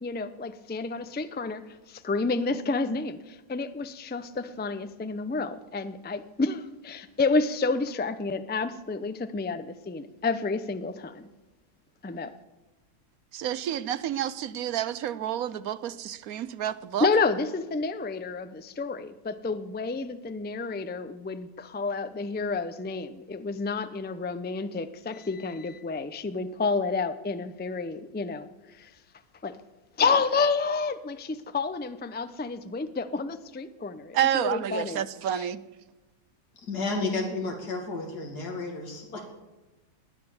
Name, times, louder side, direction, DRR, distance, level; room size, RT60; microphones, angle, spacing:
voice 1, 0.0-11.3 12.0-12.3 17.0-28.5 28.8-28.9 29.4-29.6 30.0-35.0 35.3-35.5, left 4 dB, 15° left, 0.3 m, -30 dB
voice 2, 13.3-17.1 34.1-35.6, right 10 dB, 65° right, 1.1 m, -29 dB
voice 3, 36.6-39.2, left 3 dB, 70° left, 2.9 m, -32 dB
19.5 x 10.0 x 7.2 m
omnidirectional pair, 1.8 m